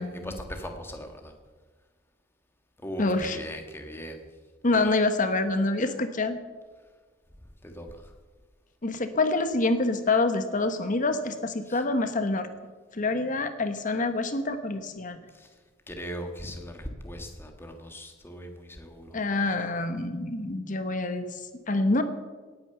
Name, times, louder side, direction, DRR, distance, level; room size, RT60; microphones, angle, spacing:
voice 1, 0.0-1.3 2.8-4.2 4.7-4.9 7.6-8.1 11.6-11.9 15.3-15.6 15.9-19.2, equal, 10° left, 4 dB, 1.7 m, -39 dB
voice 2, 3.0-3.4 4.6-6.4 8.8-12.5 12.9-15.2 19.1-21.4 21.7-22.0, left 2 dB, 40° left, 9 dB, 1.1 m, -26 dB
18.5 x 9.1 x 6.9 m, 1.4 s
head